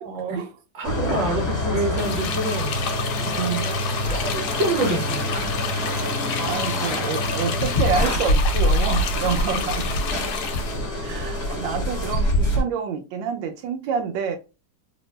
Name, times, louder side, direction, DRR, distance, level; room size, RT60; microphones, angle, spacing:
voice 1, 0.0-0.5 3.2-3.6 5.7-9.9 11.0-14.4, right 6 dB, 90° right, 1.4 m, -28 dB
voice 2, 0.7-2.8 3.6-3.8 4.1-5.2, right 2 dB, 55° right, 1.0 m, -26 dB
sound 1, 0.8-12.6, equal, 45° left, 1.1 m, -25 dB
sound 2, 2.0-10.8, left 7 dB, 80° left, 1.3 m, -31 dB
3.4 x 2.0 x 3.1 m
omnidirectional pair, 2.0 m